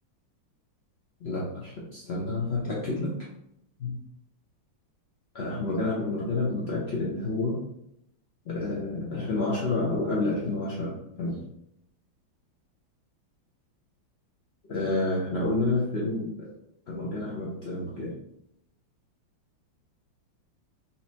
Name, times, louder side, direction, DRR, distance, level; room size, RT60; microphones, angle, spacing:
voice 1, 1.2-3.2 3.8-3.9 5.3-7.6 8.5-10.9 11.2-11.4 14.7-16.5 16.9-18.1, left 2 dB, 60° left, -6 dB, 0.6 m, -29 dB
4.2 x 3.1 x 2.7 m, 0.77 s
omnidirectional pair, 2.2 m